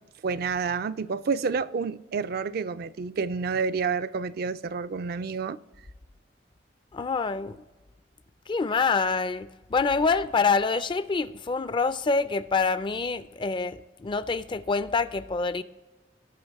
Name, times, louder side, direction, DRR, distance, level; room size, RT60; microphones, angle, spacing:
voice 1, 0.2-5.6, right 5 dB, 60° right, 0.4 m, -29 dB
voice 2, 6.9-7.6 8.5-15.6, left 4 dB, 25° left, 0.4 m, -26 dB
17.5 x 6.0 x 3.5 m
head